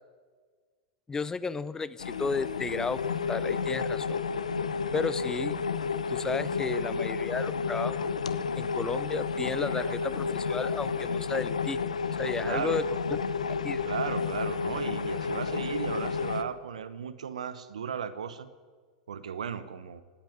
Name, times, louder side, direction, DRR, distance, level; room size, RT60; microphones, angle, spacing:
voice 1, 1.1-4.2 4.9-5.6 6.1-8.1 8.6-11.8 12.2-13.2 13.6-13.8, left 4 dB, 15° left, 17 dB, 0.6 m, -33 dB
sound 1, 2.0-16.4, left 5 dB, 85° left, 0.8 m, -31 dB
voice 2, 9.7-10.1 12.4-12.9 13.8-18.5 19.1-20.0, right 7 dB, 80° right, 13 dB, 1.0 m, -36 dB
17.0 x 8.8 x 9.4 m, 1.5 s
hypercardioid pair, 95°, 4 cm